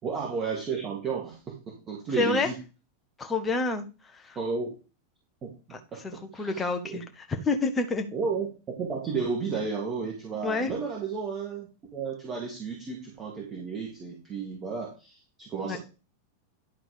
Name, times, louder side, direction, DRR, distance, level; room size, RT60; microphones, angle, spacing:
voice 1, 0.0-2.5 4.4-4.7 5.4-5.5 5.9-7.0 8.1-15.8, right 5 dB, 25° right, -2 dB, 2.5 m, -33 dB
voice 2, 2.2-2.5 3.2-4.4 5.7-8.1 10.4-10.7 15.6-15.8, left 3 dB, 15° left, 4 dB, 1.5 m, -29 dB
11.5 x 3.9 x 5.2 m, 0.31 s
figure-of-eight pair, 90°, 0 cm